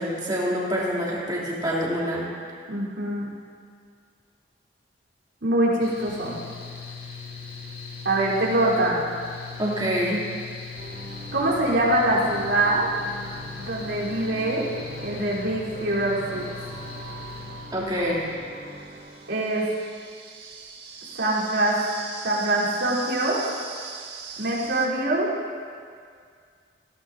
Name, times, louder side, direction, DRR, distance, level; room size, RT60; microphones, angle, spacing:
voice 1, 0.0-2.3 9.6-10.2 17.7-18.2, equal, 20° right, -6 dB, 2.9 m, -26 dB
voice 2, 2.7-3.3 5.4-6.4 8.0-9.0 11.3-12.9 13.6-14.7 15.0-16.5 19.3-19.7 21.2-21.8 22.2-23.4 24.4-25.3, right 1 dB, 75° right, -7 dB, 3.7 m, -24 dB
Mechanical fan, 5.8-18.4, left 5 dB, 50° left, 2.8 m, -40 dB
sound 1, 10.8-19.7, right 2 dB, 45° right, 0.8 m, -42 dB
sound 2, 17.4-24.9, right 5 dB, 60° right, 1.8 m, -40 dB
18.5 x 16.5 x 2.7 m, 2.1 s
head